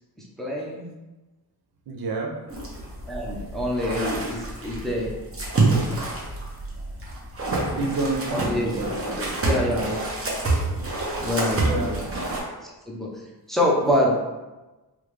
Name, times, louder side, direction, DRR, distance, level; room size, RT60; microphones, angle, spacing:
voice 1, 0.2-0.8 3.1-5.1 8.3-10.0 11.2-12.0 12.6-13.1 13.5-14.2, left 1 dB, ahead, -4 dB, 0.6 m, -26 dB
voice 2, 1.9-2.4 7.8-9.4 11.6-12.4, right 3 dB, 65° right, 1 dB, 0.6 m, -30 dB
sound 1, 2.5-12.4, right 2 dB, 35° right, 0.9 m, -27 dB
3.5 x 2.4 x 3.1 m, 1.1 s
wide cardioid pair, 115°, 39 cm